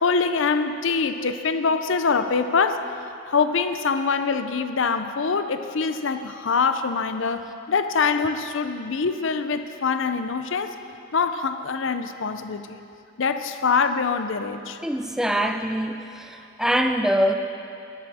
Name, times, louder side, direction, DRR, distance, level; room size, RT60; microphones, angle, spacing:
voice 1, 0.0-2.8 3.3-10.8 11.1-12.8 13.2-14.8, left 5 dB, 60° left, 9 dB, 0.5 m, -24 dB
voice 2, 14.8-17.3, equal, ahead, 6 dB, 0.4 m, -24 dB
13.5 x 10.5 x 4.2 m, 2.6 s
head